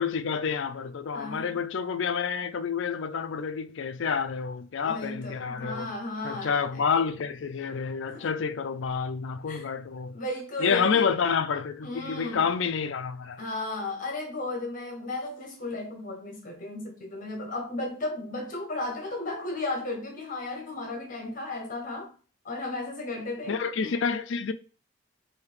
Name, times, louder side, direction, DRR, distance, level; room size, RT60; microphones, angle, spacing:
voice 1, 0.0-5.9 6.2-10.2 10.6-13.4 23.5-24.5, left 6 dB, 60° left, 0.4 m, -29 dB
voice 2, 1.1-1.6 4.8-6.6 8.1-8.3 9.5-9.7 10.1-11.1 11.8-12.4 13.4-22.1 22.4-23.9, left 2 dB, 40° left, 0.9 m, -34 dB
4.8 x 2.8 x 3.3 m
head